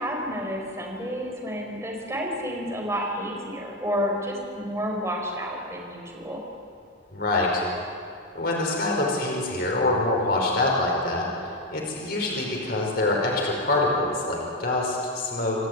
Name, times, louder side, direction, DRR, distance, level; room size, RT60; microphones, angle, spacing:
voice 1, 0.0-6.4, equal, 15° right, -1 dB, 4.9 m, -30 dB
voice 2, 7.1-7.6 8.3-11.3 11.7-15.7, left 2 dB, 55° left, -1 dB, 5.1 m, -25 dB
29.0 x 13.0 x 9.6 m, 2.4 s
head